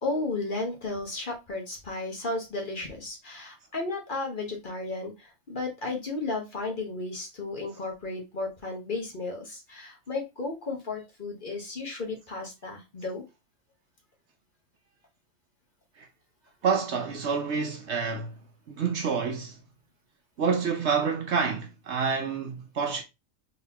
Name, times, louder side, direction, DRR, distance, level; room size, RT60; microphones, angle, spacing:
voice 1, 0.0-13.2, left 3 dB, 40° left, 1.2 m, -34 dB
voice 2, 16.6-18.3 18.7-19.6 20.4-23.0, right 5 dB, 60° right, 0.9 m, -28 dB
4.0 x 3.9 x 2.8 m
omnidirectional pair, 1.5 m